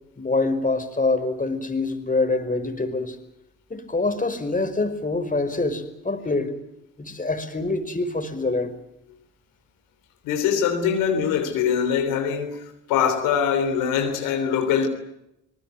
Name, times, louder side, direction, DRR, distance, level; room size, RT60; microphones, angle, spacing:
voice 1, 0.2-3.2 3.7-6.5 7.0-8.7, left 3 dB, 25° left, 5.3 m, -25 dB
voice 2, 10.2-12.6 12.9-14.9, left 7 dB, 90° left, 3.4 m, -23 dB
27.0 x 19.5 x 9.3 m
supercardioid pair, 55°, 32 cm